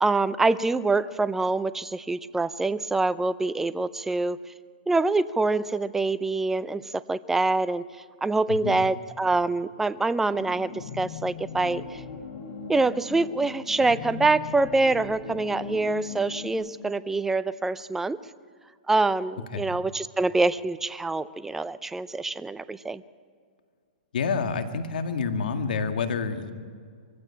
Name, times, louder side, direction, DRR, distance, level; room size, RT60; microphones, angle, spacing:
voice 1, 0.0-4.4 4.9-7.9 8.2-12.0 12.7-18.2 18.9-23.0, right 3 dB, 5° right, 14 dB, 0.5 m, -25 dB
voice 2, 8.5-8.8 19.5-19.7 24.1-26.5, left 5 dB, 75° left, 7 dB, 1.9 m, -28 dB
sound 1, 10.2-16.5, left 5 dB, 55° left, 3.7 m, -39 dB
23.0 x 16.0 x 8.6 m, 2.1 s
hypercardioid pair, 140°, 5 cm